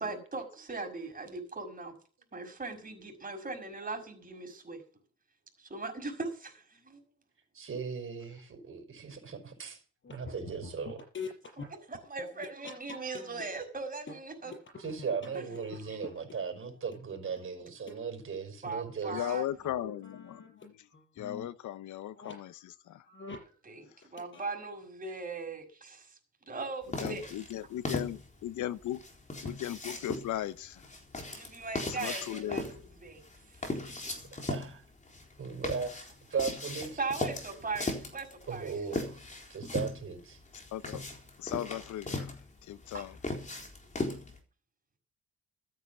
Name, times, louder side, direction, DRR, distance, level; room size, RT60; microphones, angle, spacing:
voice 1, 0.0-1.9 2.3-4.8 5.6-7.0 11.7-14.5 15.9-16.0 18.6-19.9 23.6-26.2 26.5-27.2 31.3-33.2 33.5-33.6 37.0-39.0 42.9-43.1, right 3 dB, 30° right, 5.8 m, -39 dB
voice 2, 7.5-9.8 10.1-11.0 14.8-19.3 33.8-33.9 34.5-34.8 35.4-35.9 36.3-37.0 38.5-40.4, right 5 dB, 45° right, 5.2 m, -37 dB
sound 1, 10.0-13.4 13.8-17.0 17.4-17.5 17.9-18.0 18.3-18.4 18.7-18.8 19.1-19.2 19.5-20.6 20.9-21.5 22.1-22.3 22.9-23.6 23.9-24.4, left 4 dB, 40° left, 5.7 m, -45 dB
voice 3, 19.1-20.9 21.2-23.0 27.0-29.0 29.4-30.8 31.9-32.6 40.7-41.0 41.4-42.3 42.6-43.1, left 12 dB, 75° left, 0.9 m, -37 dB
sound 2, 26.9-44.4, left 2 dB, 25° left, 4.1 m, -38 dB
14.0 x 9.2 x 7.2 m
cardioid pair, 90°, 30 cm